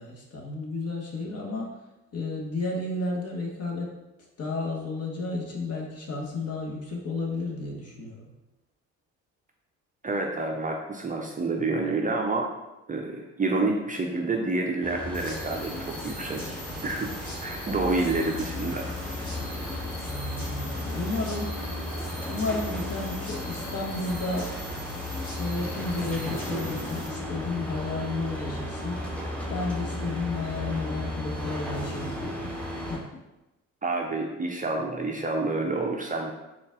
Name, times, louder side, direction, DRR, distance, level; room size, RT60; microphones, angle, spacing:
voice 1, 0.0-1.7 2.1-3.9 4.4-8.3 20.0-21.5 22.2-24.5 25.4-29.0 29.5-33.1, left 3 dB, 40° left, -1 dB, 1.1 m, -32 dB
voice 2, 10.0-12.5 12.9-16.6 16.8-19.4 33.8-36.3, right 3 dB, 20° right, 0 dB, 0.5 m, -29 dB
sound 1, 14.8-33.0, left 1 dB, 5° left, 0.9 m, -34 dB
sound 2, 15.1-27.1, equal, 80° left, 1.2 m, -43 dB
3.9 x 2.4 x 3.6 m, 0.99 s
hypercardioid pair, 50°, 38 cm